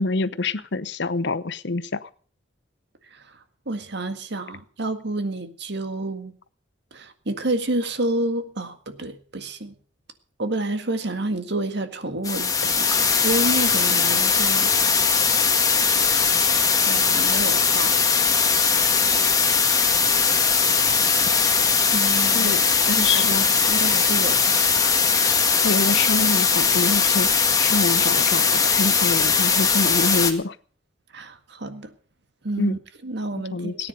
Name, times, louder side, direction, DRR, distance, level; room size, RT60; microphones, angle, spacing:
voice 1, 0.0-2.1 22.3-23.5 25.6-30.6 32.6-32.8 33.3-33.9, left 3 dB, 65° left, 15 dB, 0.8 m, -26 dB
voice 2, 3.1-6.3 6.9-9.7 10.4-14.7 16.8-18.0 21.2-21.3 21.9-22.6 23.0-25.0 25.3-25.7 31.1-31.9 32.4-33.9, right 2 dB, 60° right, 9 dB, 1.8 m, -30 dB
sound 1, 12.2-30.3, left 5 dB, 20° left, 1.7 m, -20 dB
18.0 x 9.8 x 6.5 m, 0.43 s
head